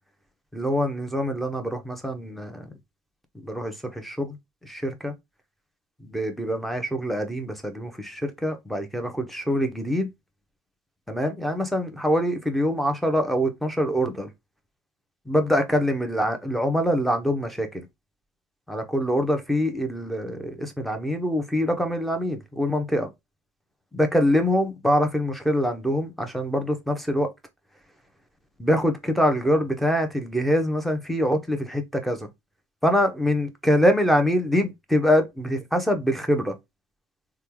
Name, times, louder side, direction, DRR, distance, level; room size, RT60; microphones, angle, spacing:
voice 1, 0.5-2.7 3.4-4.4 4.6-5.1 6.1-10.1 11.1-14.3 15.3-17.8 18.7-23.1 23.9-27.3 28.6-32.3 32.8-36.5, equal, ahead, 0.9 m, -24 dB
3.3 x 2.3 x 3.0 m
hypercardioid pair, 80°, 9 cm